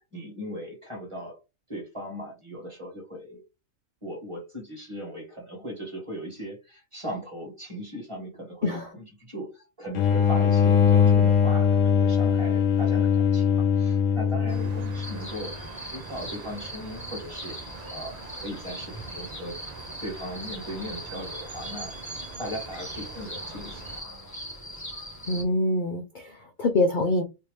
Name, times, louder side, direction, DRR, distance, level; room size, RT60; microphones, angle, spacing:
voice 1, 0.0-1.4 1.7-3.4 4.0-19.6 20.0-21.9 22.4-23.9, equal, 25° right, 1.5 m, -38 dB
sound 1, 9.9-15.3, left 7 dB, 75° left, 0.9 m, -21 dB
sound 2, 14.5-24.0, right 4 dB, 50° right, 0.5 m, -43 dB
sound 3, 15.0-25.4, equal, 15° left, 1.1 m, -40 dB
voice 2, 25.3-27.2, left 2 dB, 55° left, 0.6 m, -25 dB
3.2 x 2.7 x 3.2 m
omnidirectional pair, 1.4 m